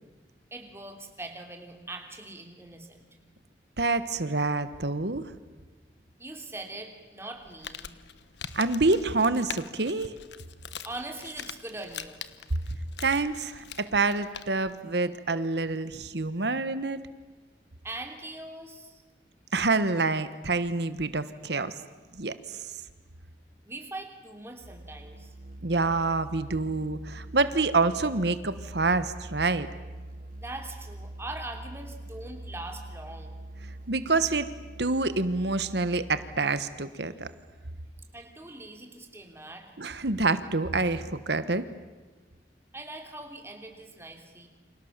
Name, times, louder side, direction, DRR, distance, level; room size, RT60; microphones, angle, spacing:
voice 1, 0.5-3.1 6.2-8.0 10.8-12.2 17.8-19.0 23.6-25.3 30.4-33.4 38.1-39.7 42.7-44.5, right 2 dB, 15° right, 3 dB, 3.2 m, -41 dB
voice 2, 3.8-5.3 8.5-10.1 13.0-17.0 19.5-21.7 22.2-22.7 25.6-29.7 33.9-34.5 34.8-37.3 39.8-41.6, right 3 dB, 70° right, 12 dB, 1.3 m, -27 dB
Crumpling crinkling, 7.3-14.8, left 8 dB, 75° left, 1.3 m, -43 dB
Musical instrument, 24.6-36.6, right 1 dB, 45° right, 1.1 m, -44 dB
29.5 x 26.5 x 7.4 m, 1.3 s
head